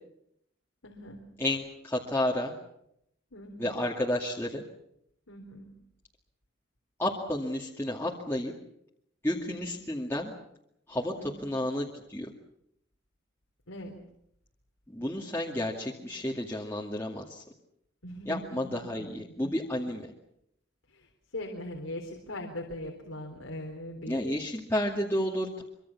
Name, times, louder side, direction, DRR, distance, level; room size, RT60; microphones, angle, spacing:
voice 1, 0.8-1.2 3.3-3.8 5.3-5.7 9.3-9.7 11.2-11.5 13.7-14.0 18.0-19.1 19.4-19.5 20.9-24.4, left 1 dB, 90° left, 1 dB, 3.7 m, -41 dB
voice 2, 1.4-2.5 3.6-4.6 7.0-8.5 9.2-10.3 10.9-12.3 14.9-17.4 18.3-20.1 24.1-25.6, left 1 dB, 10° left, -3 dB, 2.3 m, -31 dB
24.5 x 24.5 x 7.2 m, 0.77 s
head